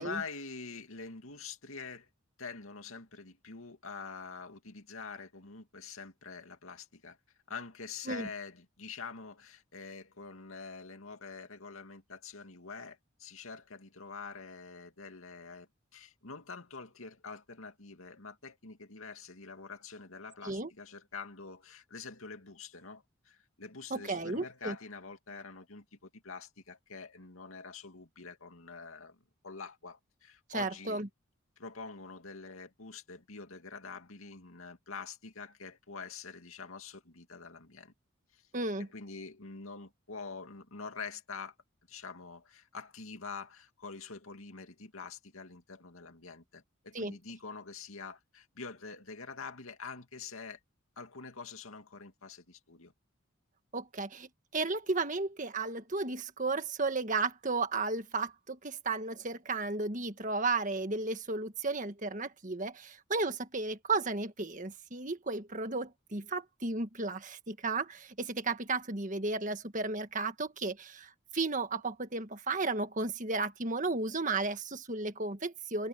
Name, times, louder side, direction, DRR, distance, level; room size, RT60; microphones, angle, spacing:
voice 1, 0.0-2.1 2.4-7.2 7.5-31.0 31.6-37.9 38.3-38.5 38.8-41.5 41.9-50.6 51.0-52.9, left 4 dB, 90° left, 2.4 m, -46 dB
voice 2, 23.9-24.7 30.5-31.1 38.5-38.9 46.9-47.1 53.7-75.9, right 3 dB, 40° right, 1.6 m, -34 dB
head